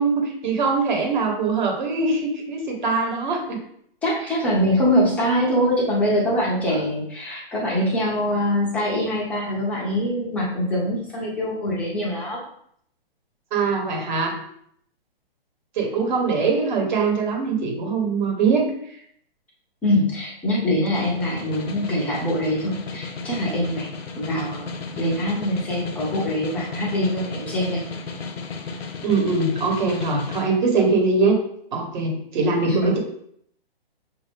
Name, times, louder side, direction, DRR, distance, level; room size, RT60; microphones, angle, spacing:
voice 1, 0.0-3.6 13.5-14.4 15.8-18.7 29.0-31.4 31.7-33.0, right 4 dB, 50° right, 1 dB, 1.3 m, -22 dB
voice 2, 4.0-12.4 19.8-23.9 24.2-24.7 25.0-27.8 32.6-33.0, equal, 5° left, -5 dB, 0.4 m, -23 dB
Snare drum, 20.7-30.5, left 4 dB, 85° left, 0.8 m, -34 dB
5.8 x 2.5 x 3.4 m, 0.68 s
hypercardioid pair, 150°, 30 cm